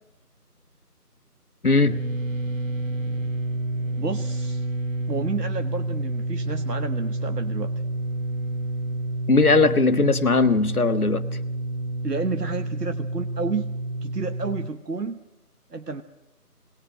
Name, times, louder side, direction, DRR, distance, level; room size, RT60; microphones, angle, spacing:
voice 1, 1.6-2.0 9.3-11.2, left 3 dB, 65° left, 11 dB, 1.4 m, -19 dB
sound 1, 1.9-14.7, right 2 dB, 55° right, 0.8 m, -29 dB
voice 2, 4.0-4.6 5.1-7.7 12.0-13.7 14.0-15.2 15.7-16.0, right 4 dB, 85° right, 7 dB, 1.2 m, -30 dB
21.0 x 18.0 x 7.6 m, 0.99 s
figure-of-eight pair, 180°, 47 cm